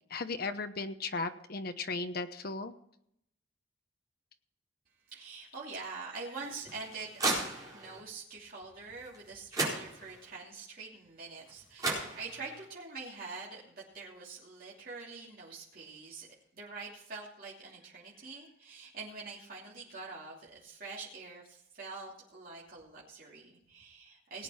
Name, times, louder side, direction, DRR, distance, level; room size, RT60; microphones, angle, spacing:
voice 1, 0.1-2.7, left 3 dB, 50° left, 9 dB, 1.0 m, -36 dB
voice 2, 5.1-7.3 7.7-16.3 16.5-24.4, right 4 dB, 45° right, -5 dB, 2.9 m, -45 dB
sound 1, 6.4-8.0 9.1-9.2 9.5-10.4 11.5-11.6 11.8-12.7, right 2 dB, 20° right, 4.3 m, -35 dB
18.5 x 9.1 x 4.4 m, 0.73 s
head